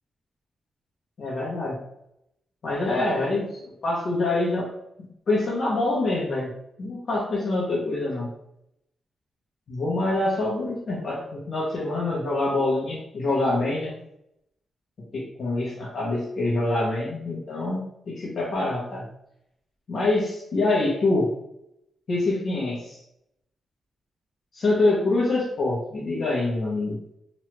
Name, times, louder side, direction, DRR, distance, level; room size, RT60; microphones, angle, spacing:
voice 1, 1.2-1.8 2.6-4.7 5.0-8.3 9.7-13.9 15.1-19.1 19.9-21.3 22.1-23.0 24.5-27.0, left 2 dB, 50° left, -4 dB, 0.8 m, -25 dB
3.0 x 2.3 x 3.0 m, 0.79 s
wide cardioid pair, 175°, 0 cm